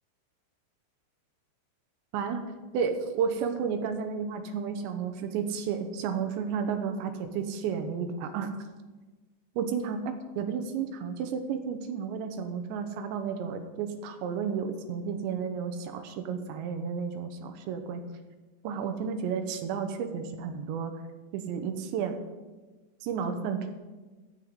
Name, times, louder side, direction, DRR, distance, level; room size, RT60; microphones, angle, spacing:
voice 1, 2.7-8.5 9.6-10.0 10.4-18.0 18.6-20.9 21.3-22.2 23.0-23.7, right 6 dB, 75° right, 7 dB, 3.0 m, -32 dB
16.0 x 5.4 x 7.9 m, 1.2 s
omnidirectional pair, 5.5 m